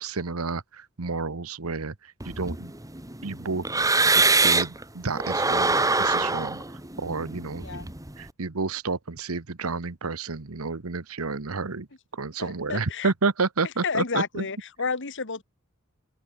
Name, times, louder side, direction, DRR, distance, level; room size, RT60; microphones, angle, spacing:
voice 1, 0.0-2.7 3.2-3.7 4.0-6.6 7.0-7.9 8.2-11.9 12.1-14.5, right 4 dB, 80° right, 1.2 m, -30 dB
sound 1, 2.2-4.8 5.2-8.2, right 3 dB, 15° right, 2.1 m, -24 dB
voice 2, 12.4-13.1 13.8-15.4, left 5 dB, 60° left, 1.9 m, -31 dB
head